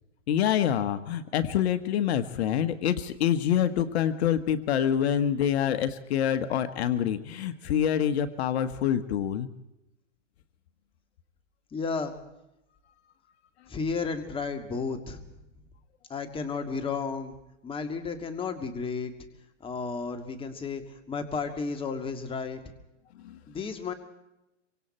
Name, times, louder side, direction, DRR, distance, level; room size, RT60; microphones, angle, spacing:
voice 1, 0.3-9.5 23.2-23.4, left 9 dB, 60° left, 10 dB, 1.5 m, -26 dB
voice 2, 11.7-12.1 13.7-15.2 16.1-17.4 17.6-19.1 19.6-22.6 23.5-23.9, left 5 dB, 15° left, 7 dB, 2.3 m, -33 dB
26.5 x 25.0 x 4.4 m, 0.90 s
hypercardioid pair, 135°, 36 cm